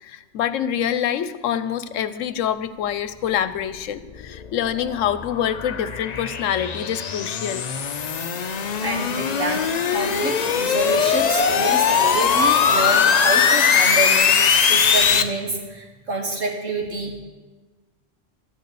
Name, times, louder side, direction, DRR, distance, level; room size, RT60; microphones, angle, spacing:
voice 1, 0.0-7.7, left 9 dB, 80° left, 13 dB, 1.0 m, -26 dB
sound 1, 3.9-15.2, left 6 dB, 50° left, 0.5 m, -20 dB
voice 2, 8.8-17.2, right 2 dB, 75° right, 0 dB, 1.9 m, -27 dB
13.0 x 6.6 x 8.4 m, 1.3 s
omnidirectional pair, 1.3 m